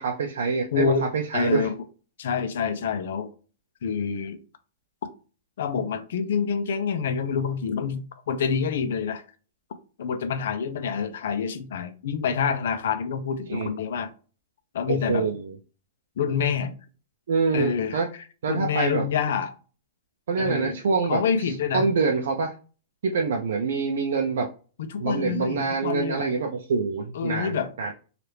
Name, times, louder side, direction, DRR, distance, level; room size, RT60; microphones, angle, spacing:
voice 1, 0.0-1.7 13.5-13.7 14.9-15.6 17.3-18.1 18.4-19.1 20.3-22.5 23.0-24.5 25.0-27.9, right 4 dB, 80° right, 0.5 m, -26 dB
voice 2, 0.7-1.1 1.3-1.7 2.2-3.3 3.8-4.4 5.6-9.2 10.0-14.1 14.7-15.3 16.2-16.7 17.5-18.0 18.5-19.5 20.4-20.8 21.1-21.8 24.8-26.3 27.1-27.7, left 6 dB, 65° left, 0.5 m, -27 dB
3.3 x 2.4 x 2.8 m
supercardioid pair, 180°, 0 cm